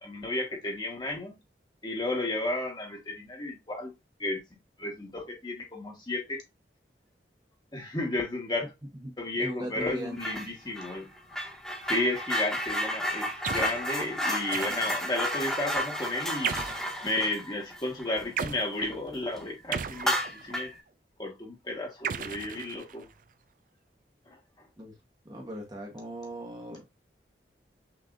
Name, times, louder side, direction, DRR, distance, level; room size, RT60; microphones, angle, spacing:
voice 1, 0.0-1.4 1.8-3.9 4.2-4.4 4.8-6.4 7.7-8.7 9.2-11.1 11.9-20.2 20.4-20.7 21.2-23.0 24.3-24.4, left 2 dB, 25° left, 1.3 m, -33 dB
voice 2, 8.9-10.2 24.8-24.9 25.2-26.9, right 1 dB, 25° right, 1.1 m, -38 dB
sound 1, 10.2-10.5 10.8-18.9 19.3-19.4 19.9-20.8, equal, 5° left, 1.3 m, -32 dB
sound 2, 13.4-13.8 14.5-15.1 16.4-16.9 18.4-18.7 19.7-20.6 22.0-23.1, right 7 dB, 50° right, 0.4 m, -35 dB
6.1 x 3.2 x 2.5 m
head